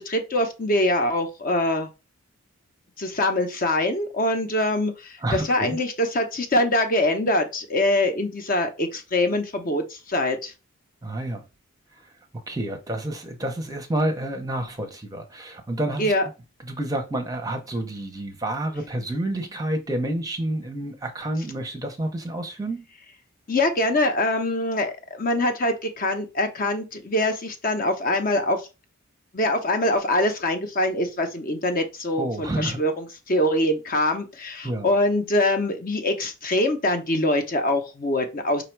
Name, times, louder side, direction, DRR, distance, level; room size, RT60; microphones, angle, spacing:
voice 1, 0.0-1.9 3.0-10.5 16.0-16.3 23.5-28.7 29.3-38.6, left 1 dB, 40° left, 0.7 m, -24 dB
voice 2, 5.2-5.8 11.0-11.4 12.0-12.1 12.5-16.1 16.6-22.8 32.2-32.8 34.6-34.9, right 1 dB, 15° right, 0.6 m, -29 dB
5.0 x 2.3 x 4.5 m
head